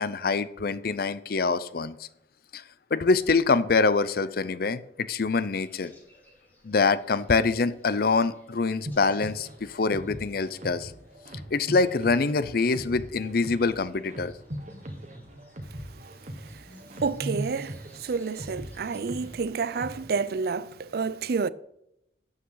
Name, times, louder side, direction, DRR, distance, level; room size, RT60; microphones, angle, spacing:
voice 1, 0.0-2.1 2.5-2.6 2.9-5.9 6.6-10.9 11.5-14.3, left 4 dB, 55° left, 0.5 m, -25 dB
sound 1, 5.6-19.3, right 2 dB, 10° left, 2.3 m, -47 dB
sound 2, 8.9-20.1, equal, 40° right, 1.4 m, -41 dB
voice 2, 17.0-21.5, right 5 dB, 60° right, 0.4 m, -29 dB
12.0 x 8.5 x 3.9 m
head